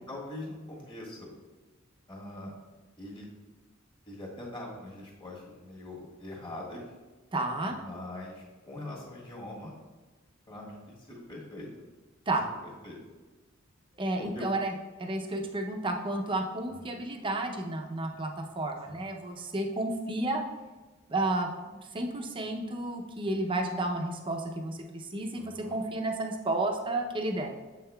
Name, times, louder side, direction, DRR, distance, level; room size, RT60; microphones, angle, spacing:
voice 1, 0.1-1.3 2.1-2.5 3.0-3.3 4.1-6.8 7.7-9.7 10.5-11.7 12.6-13.0 14.2-14.4 16.8-16.9 18.8-19.1 25.3-25.8, left 1 dB, 25° left, -4 dB, 1.5 m, -42 dB
voice 2, 7.3-7.8 12.3-12.5 14.0-14.7 15.0-20.4 21.1-21.5 21.9-27.5, right 2 dB, 25° right, 3 dB, 0.5 m, -31 dB
7.4 x 5.6 x 2.2 m, 1.2 s
head